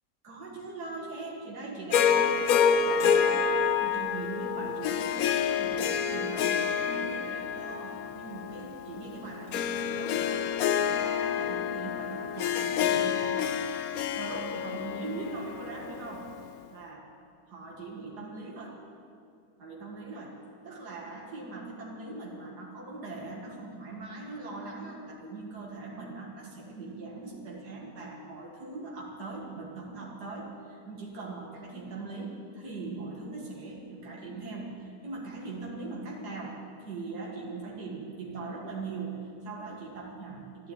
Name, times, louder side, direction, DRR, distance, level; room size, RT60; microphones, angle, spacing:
voice 1, 0.2-16.3 16.7-17.0 17.5-18.8 19.6-20.4 20.6-40.7, right 3 dB, 90° right, -2 dB, 2.3 m, -40 dB
Harp, 1.9-16.3, left 7 dB, 70° left, 1.1 m, -28 dB
13.5 x 12.0 x 8.6 m, 2.5 s
omnidirectional pair, 1.7 m